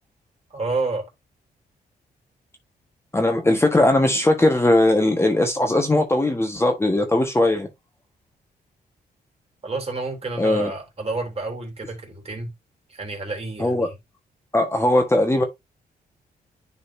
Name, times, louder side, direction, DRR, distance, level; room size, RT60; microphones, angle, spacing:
voice 1, 0.5-1.1 9.6-12.5 12.9-13.9, right 3 dB, 40° right, 3.3 m, -29 dB
voice 2, 3.1-7.7 10.4-10.7 13.6-13.9 14.5-15.4, left 1 dB, 15° left, 1.4 m, -19 dB
10.5 x 4.1 x 2.7 m
cardioid pair, 85°, 16 cm